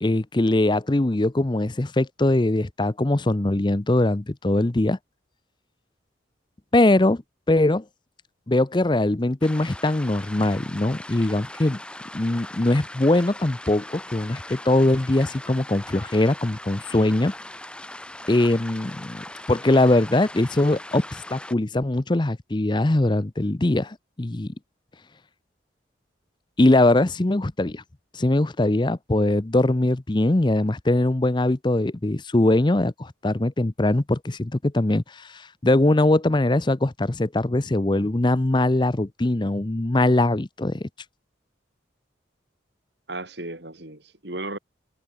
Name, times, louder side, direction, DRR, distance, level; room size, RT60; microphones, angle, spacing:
voice 1, 0.0-5.0 6.7-7.2 7.5-7.8 8.5-11.8 12.1-17.3 18.3-24.5 26.6-27.8 28.1-40.9, left 2 dB, 25° left, 0.6 m, -21 dB
sound 1, 9.4-21.5, left 1 dB, 5° left, 1.8 m, -40 dB
voice 2, 43.1-44.6, right 2 dB, 65° right, 4.6 m, -35 dB
head